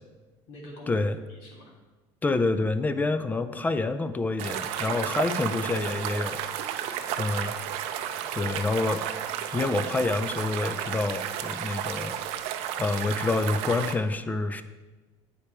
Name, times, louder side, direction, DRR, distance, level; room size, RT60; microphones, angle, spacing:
voice 1, 0.5-1.0 1.3-1.7 4.7-5.1 6.8-7.5, left 1 dB, 75° left, -1 dB, 1.9 m, -46 dB
voice 2, 2.2-6.4 7.2-7.5 8.3-9.0 9.5-12.2 12.8-14.6, left 3 dB, 15° left, 11 dB, 0.4 m, -27 dB
sound 1, 4.4-13.9, right 10 dB, 80° right, 0.5 m, -32 dB
8.3 x 5.0 x 4.4 m, 1.2 s
cardioid pair, 135°, 10 cm